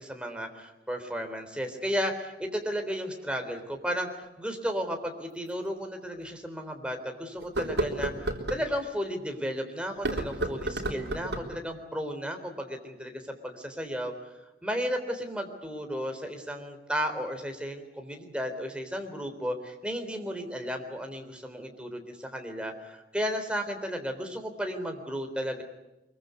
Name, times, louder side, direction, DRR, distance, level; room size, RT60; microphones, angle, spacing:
voice 1, 0.0-14.1 14.6-25.6, equal, 5° right, 4 dB, 3.7 m, -34 dB
sound 1, 4.2-4.3 5.5-5.6 6.1-6.2 7.4-8.6 9.9-11.6, right 1 dB, 75° right, 3.8 m, -31 dB
24.5 x 23.5 x 8.3 m, 0.99 s
head